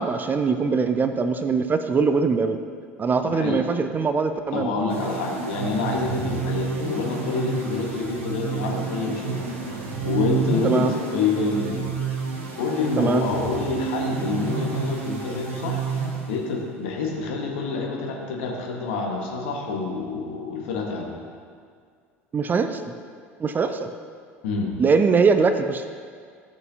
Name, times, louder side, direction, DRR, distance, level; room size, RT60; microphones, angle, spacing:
voice 1, 0.0-2.6 3.0-4.7 10.6-10.9 13.0-13.2 22.3-22.9 23.4-23.9 24.8-25.9, right 5 dB, 25° right, 9 dB, 0.5 m, -22 dB
voice 2, 3.2-3.6 4.5-9.4 10.0-11.9 12.6-15.8 16.3-21.1 24.4-24.7, left 4 dB, 65° left, -1 dB, 1.6 m, -27 dB
sound 1, 4.9-16.7, right 5 dB, 70° right, 1.4 m, -29 dB
13.5 x 6.6 x 2.9 m, 2.1 s
figure-of-eight pair, 70°, 7 cm